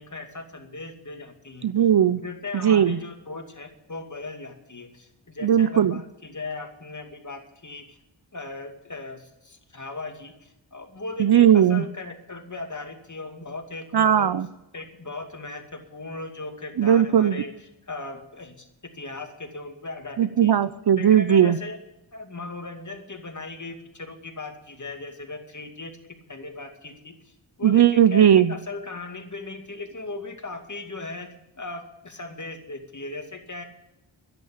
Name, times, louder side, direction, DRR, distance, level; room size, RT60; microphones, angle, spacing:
voice 1, 0.0-1.7 2.2-8.0 8.3-14.3 14.7-17.5 17.9-18.7 18.9-20.5 21.0-21.8 22.1-25.9 26.3-27.3 27.6-33.6, left 3 dB, 35° left, 5 dB, 2.4 m, -37 dB
voice 2, 1.6-2.2 2.6-3.0 5.4-6.0 11.2-11.8 13.9-14.5 16.8-17.4 20.2-21.6 27.6-28.5, right 9 dB, 50° right, 15 dB, 0.7 m, -18 dB
11.0 x 9.8 x 8.7 m, 0.91 s
cardioid pair, 40°, 50 cm